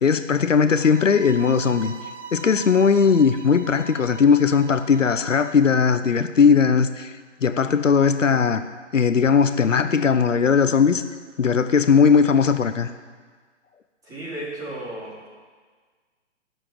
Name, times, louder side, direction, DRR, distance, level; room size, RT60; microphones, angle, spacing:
voice 1, 0.0-1.9 2.3-7.1 7.4-8.6 8.9-11.0 11.4-12.9, left 6 dB, 85° left, 11 dB, 0.9 m, -18 dB
sound 1, 0.7-5.7, right 5 dB, 70° right, 1.3 m, -41 dB
voice 2, 14.0-15.3, right 1 dB, 10° right, -8 dB, 4.2 m, -34 dB
11.0 x 7.6 x 10.0 m, 1.5 s
figure-of-eight pair, 140°, 37 cm